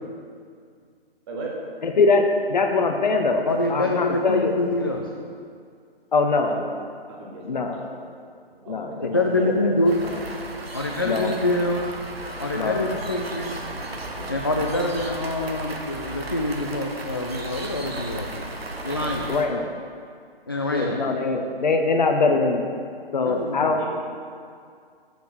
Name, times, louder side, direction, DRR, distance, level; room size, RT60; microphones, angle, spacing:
voice 1, 1.8-4.5 6.1-6.6 7.4-7.8 8.7-10.2 11.0-11.3 12.5-12.9 14.2-14.4 19.3-19.7 20.7-22.7 23.1-23.9, left 3 dB, 45° left, 4 dB, 0.9 m, -23 dB
voice 2, 3.5-5.1 9.0-9.9 10.7-11.9 12.4-13.5 14.3-18.4 18.8-19.2 20.5-20.9 23.2-23.7, left 1 dB, 25° left, 1 dB, 0.3 m, -25 dB
voice 3, 7.1-7.4 7.7-8.1 8.6-9.0 9.4-9.8 18.9-19.3 20.8-21.0 23.7-23.9, right 3 dB, 25° right, -3 dB, 1.6 m, -37 dB
sound 1, 9.8-19.5, right 2 dB, 75° right, 1.2 m, -35 dB
sound 2, 11.6-16.6, right 2 dB, 80° left, 1.6 m, -45 dB
7.1 x 6.7 x 6.3 m, 2.2 s
figure-of-eight pair, 140°, 30 cm